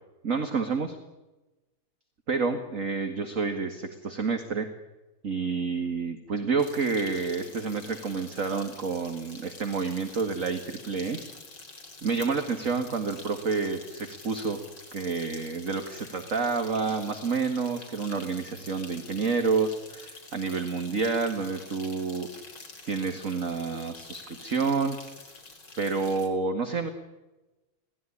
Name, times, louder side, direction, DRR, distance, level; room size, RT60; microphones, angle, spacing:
voice 1, 0.2-1.0 2.3-4.7 5.2-11.2 12.0-14.6 14.9-22.3 22.8-25.0 25.8-26.9, right 4 dB, 40° right, 7 dB, 2.1 m, -29 dB
sound 1, 6.6-26.3, left 3 dB, 65° left, 5.3 m, -47 dB
26.0 x 18.5 x 10.0 m, 1.1 s
omnidirectional pair, 2.3 m